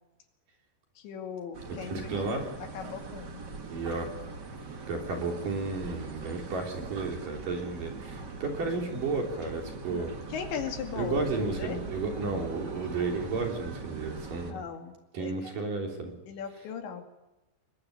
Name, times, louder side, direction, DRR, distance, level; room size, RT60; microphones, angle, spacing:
voice 1, 1.0-2.0 2.4-3.4 9.9-10.0 10.3-12.3 14.5-15.5 16.3-17.0, left 7 dB, 80° left, 4 dB, 4.6 m, -38 dB
sound 1, 1.5-14.5, right 4 dB, 80° right, 0.9 m, -41 dB
voice 2, 1.7-2.5 3.7-4.1 4.9-10.1 11.0-14.6 15.1-16.1, right 3 dB, 50° right, 2 dB, 4.9 m, -33 dB
25.0 x 22.0 x 9.5 m, 0.98 s
omnidirectional pair, 5.2 m